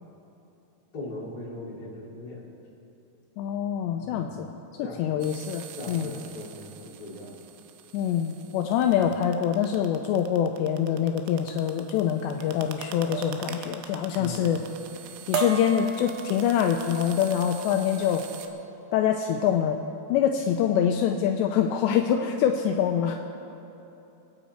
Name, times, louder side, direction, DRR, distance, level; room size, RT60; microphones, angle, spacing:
voice 1, 0.9-2.4 4.0-4.4 4.8-5.3 5.8-7.4 8.8-9.1 14.1-14.5, left 2 dB, 25° left, -6 dB, 2.6 m, -40 dB
voice 2, 3.4-4.5 5.0-6.1 7.9-14.6 15.3-18.3 18.9-19.8 20.1-23.2, left 9 dB, 80° left, 4 dB, 2.7 m, -25 dB
sound 1, 5.2-18.5, right 10 dB, 85° right, 3.1 m, -45 dB
sound 2, 12.1-12.4 13.1-13.5 13.8-14.3 14.7-15.0 15.3-16.7 17.3-17.5 17.9-18.2, right 4 dB, 60° right, 2.4 m, -34 dB
27.5 x 9.2 x 4.4 m, 3.0 s
omnidirectional pair, 5.4 m